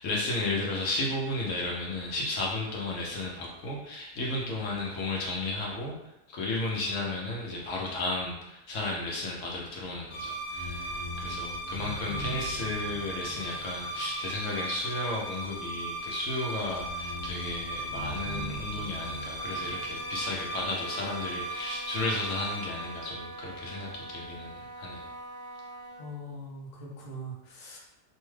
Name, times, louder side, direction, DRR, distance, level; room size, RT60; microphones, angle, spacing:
voice 1, 0.0-5.9 6.3-25.1, left 2 dB, 70° left, -2 dB, 0.9 m, -33 dB
sound 1, 10.1-23.7, right 1 dB, 90° left, 1.1 m, -37 dB
Wind instrument woodwind instrument, 18.9-26.1, right 1 dB, 65° right, 0.9 m, -44 dB
voice 2, 26.0-27.8, equal, 50° left, -4 dB, 0.5 m, -41 dB
2.7 x 2.2 x 3.1 m, 0.92 s
omnidirectional pair, 1.5 m